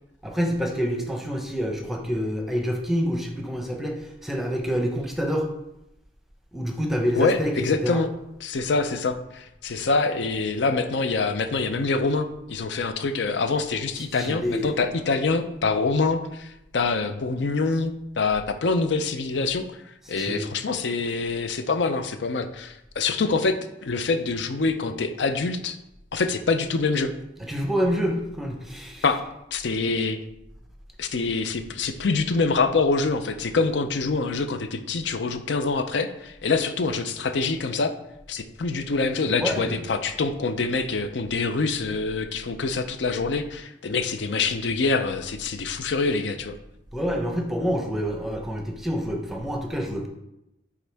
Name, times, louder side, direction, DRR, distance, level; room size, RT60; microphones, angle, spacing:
voice 1, 0.2-5.5 6.5-7.5 7.8-8.0 14.0-14.8 20.2-20.5 27.5-29.0 39.4-39.7 46.9-50.1, equal, ahead, 1 dB, 0.8 m, -27 dB
voice 2, 7.2-8.1 8.4-19.8 20.1-23.6 23.8-25.8 26.1-27.1 29.0-30.2 31.0-37.9 38.3-46.6, left 4 dB, 75° left, 9 dB, 0.6 m, -25 dB
9.4 x 3.6 x 3.4 m, 0.88 s
head